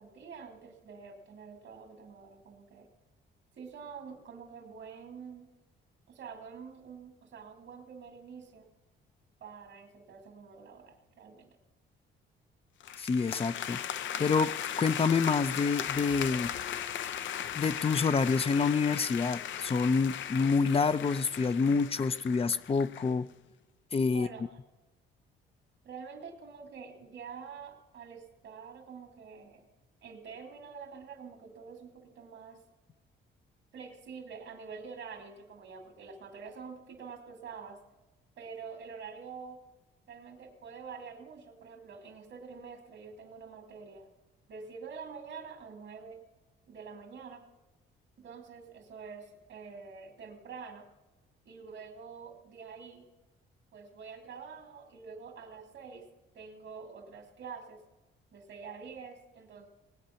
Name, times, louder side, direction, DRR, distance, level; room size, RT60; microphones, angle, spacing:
voice 1, 0.0-2.9 3.6-5.5 6.1-8.7 9.4-11.6 24.1-24.5 25.8-29.7 30.0-32.6 33.7-37.8 38.4-39.6 40.1-44.1 44.5-46.2 46.7-47.4 48.2-50.9 51.4-53.1 53.7-56.1 56.3-57.8 58.3-59.7, right 5 dB, 70° right, 4 dB, 2.6 m, -47 dB
sound 1, 12.8-23.1, left 10 dB, 70° left, 0.7 m, -37 dB
voice 2, 13.0-13.8 14.2-14.5 14.8-16.5 17.5-23.3 23.9-24.3, left 5 dB, 30° left, 14 dB, 0.6 m, -27 dB
19.5 x 8.8 x 5.8 m, 1.1 s
cardioid pair, 90°, 20 cm